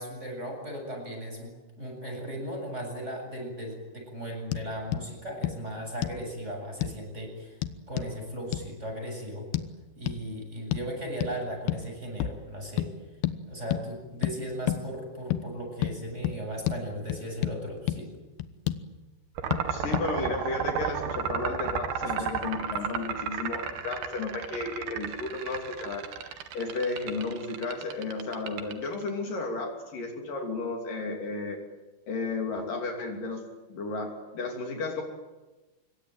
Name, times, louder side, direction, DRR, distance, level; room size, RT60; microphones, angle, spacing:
voice 1, 0.0-1.5 1.8-7.6 7.9-9.5 10.0-12.9 13.5-18.1 22.8-22.9, equal, 15° right, 2 dB, 7.9 m, -37 dB
Tapping mini-mag flashlight on soft floor, 4.5-4.7 4.9-5.1 5.4-5.6 6.0-6.2 6.8-7.0 7.6-8.1 8.5-8.7 9.5-9.7 10.1-10.2 10.7-10.9 11.2-11.4 11.7-11.9 12.2-12.4 12.8-12.9 13.2-13.4 13.7-13.8 14.2-14.4 14.7-14.8 15.3-15.4 15.8-16.0 16.2-16.4 16.7-16.8 17.1-17.6 17.9-18.0 18.4-18.8 19.5-19.6 19.9-20.1, left 13 dB, 80° left, 3.0 m, -29 dB
sound 1, 19.4-29.1, right 7 dB, 80° right, 3.9 m, -33 dB
voice 2, 19.7-31.6 32.1-33.4 33.7-35.0, left 3 dB, 60° left, 2 dB, 4.6 m, -33 dB
25.5 x 23.0 x 9.2 m, 1.1 s
omnidirectional pair, 4.4 m